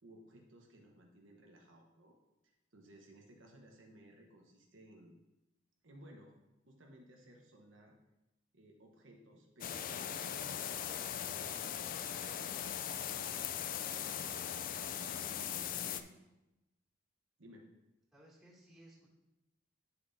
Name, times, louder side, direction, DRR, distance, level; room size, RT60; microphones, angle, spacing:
voice 1, 0.0-2.2 2.4-5.2 5.8-6.3 6.7-7.9 8.5-16.0 17.4-17.7, right 1 dB, 70° right, 0 dB, 1.1 m, -59 dB
sound 1, 9.6-16.0, left 9 dB, 45° left, 0.3 m, -39 dB
voice 2, 15.5-16.1 18.1-19.1, right 1 dB, ahead, -7 dB, 2.4 m, -59 dB
9.3 x 6.8 x 2.7 m, 0.96 s
head